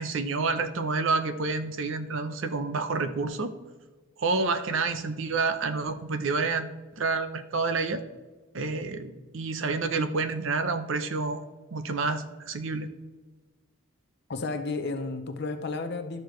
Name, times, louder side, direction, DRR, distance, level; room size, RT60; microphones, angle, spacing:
voice 1, 0.0-3.5 4.2-6.7 6.9-8.0 8.5-11.4 11.7-12.9, right 4 dB, 60° right, 9 dB, 0.6 m, -28 dB
voice 2, 14.3-16.2, left 3 dB, 50° left, 7 dB, 0.6 m, -32 dB
11.5 x 6.6 x 3.1 m, 1.3 s
head